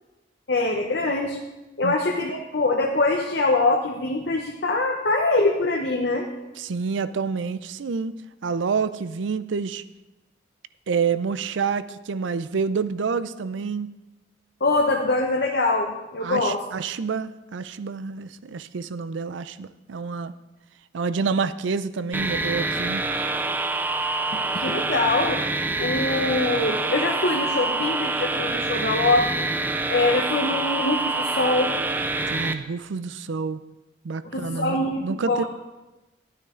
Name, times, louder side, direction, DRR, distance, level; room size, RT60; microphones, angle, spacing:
voice 1, 0.5-1.4 1.8-6.3 14.6-16.6 24.5-25.4 25.8-29.4 29.9-31.7 34.3-35.4, left 2 dB, 60° left, 1 dB, 0.9 m, -23 dB
voice 2, 6.6-9.8 10.9-13.9 16.2-20.3 20.9-23.0 32.3-33.6 34.0-35.4, right 5 dB, 75° right, 14 dB, 0.4 m, -28 dB
sound 1, 22.1-32.5, right 2 dB, 10° right, 0.4 m, -26 dB
12.0 x 9.5 x 3.8 m, 1.1 s
head